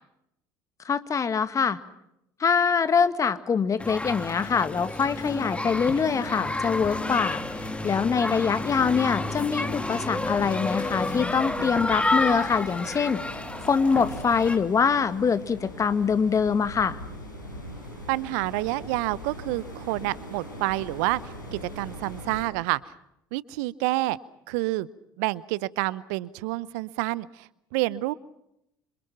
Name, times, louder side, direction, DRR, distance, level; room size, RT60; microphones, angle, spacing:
voice 1, 0.9-1.8 2.4-13.2 13.7-17.0, left 6 dB, 35° left, 12 dB, 1.9 m, -24 dB
sound 1, 3.8-14.6, left 2 dB, 10° left, 2.8 m, -30 dB
sound 2, 5.4-22.4, equal, 90° left, 7.0 m, -42 dB
voice 2, 18.1-22.8 23.3-24.2 24.5-24.9 25.2-28.1, right 19 dB, 65° right, 20 dB, 0.8 m, -28 dB
27.5 x 27.0 x 5.8 m, 0.81 s
hypercardioid pair, 65°, 10 cm